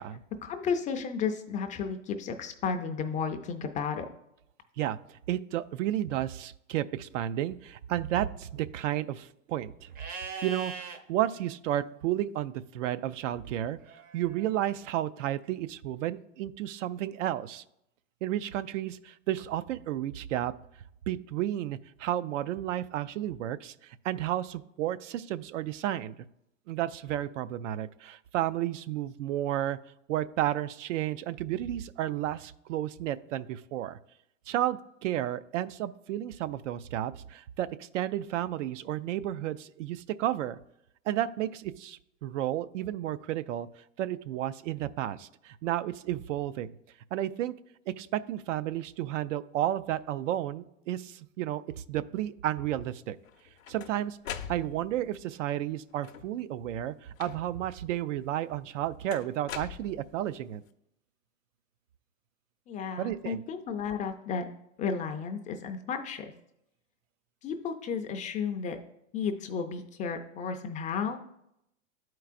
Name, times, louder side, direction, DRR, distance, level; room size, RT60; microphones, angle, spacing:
voice 1, 0.4-4.1 62.7-64.4 64.8-66.3 67.4-68.8 69.1-71.2, left 6 dB, 20° left, 6 dB, 0.4 m, -33 dB
voice 2, 5.3-9.9 10.4-10.7 11.1-13.8 14.1-17.6 18.2-20.5 21.1-26.1 26.7-29.8 30.1-34.0 34.5-40.6 41.1-43.7 44.0-46.7 47.1-47.5 47.9-51.6 51.9-53.2 53.7-54.2 54.5-60.6 63.0-63.4, right 12 dB, 70° right, 14 dB, 0.5 m, -32 dB
Livestock farm animals working animals, 9.9-11.0 13.8-14.8, right 5 dB, 25° right, 0.6 m, -41 dB
sound 1, 53.2-55.1 55.9-56.5 57.2-57.7 59.1-60.4, left 8 dB, 90° left, 0.6 m, -42 dB
11.5 x 4.6 x 2.5 m, 0.79 s
hypercardioid pair, 110°, 38 cm